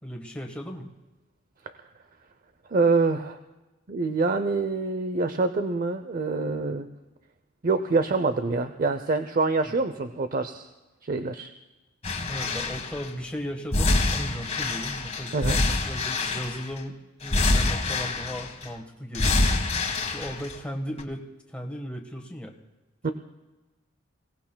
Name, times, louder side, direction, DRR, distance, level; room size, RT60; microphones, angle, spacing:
voice 1, 0.0-0.9 9.6-9.8 12.3-19.4 20.0-22.5, equal, 5° left, 2 dB, 1.4 m, -36 dB
voice 2, 2.7-3.4 3.9-6.9 7.6-10.7 11.0-11.5 15.3-15.6 23.0-23.1, right 3 dB, 45° right, 9 dB, 0.6 m, -25 dB
sound 1, 12.0-13.0 13.7-16.8 17.2-18.7 19.1-20.6 21.0-21.1, left 2 dB, 35° left, 1.5 m, -26 dB
28.5 x 18.0 x 2.3 m, 1.1 s
head